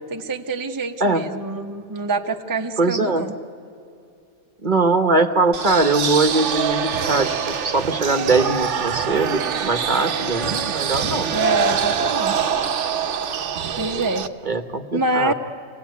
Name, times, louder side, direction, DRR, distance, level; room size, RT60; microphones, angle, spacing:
voice 1, 0.1-3.3 11.3-12.5 13.8-14.3 14.9-15.3, right 2 dB, 20° right, 4 dB, 0.8 m, -25 dB
voice 2, 2.8-3.2 4.6-11.3 14.4-15.3, right 3 dB, 40° right, 7 dB, 1.0 m, -21 dB
sound 1, 5.5-14.3, right 7 dB, 60° right, 1.1 m, -24 dB
27.0 x 18.0 x 9.3 m, 2.6 s
omnidirectional pair, 1.4 m